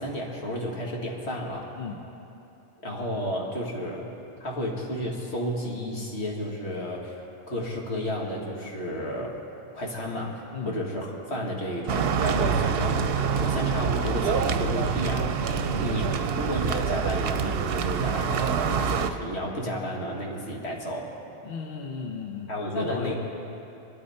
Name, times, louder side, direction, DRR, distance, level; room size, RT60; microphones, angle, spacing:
voice 1, 0.0-1.7 2.8-4.1 4.4-9.4 9.7-15.3 15.8-21.1 22.5-23.1, left 1 dB, 75° left, -2 dB, 2.2 m, -32 dB
sound 1, 11.9-19.1, right 6 dB, 65° right, 0.8 m, -26 dB
voice 2, 15.5-16.1 21.4-22.5 22.7-23.1, left 4 dB, 60° left, 0 dB, 1.1 m, -34 dB
22.0 x 13.0 x 4.3 m, 2.9 s
omnidirectional pair, 1.1 m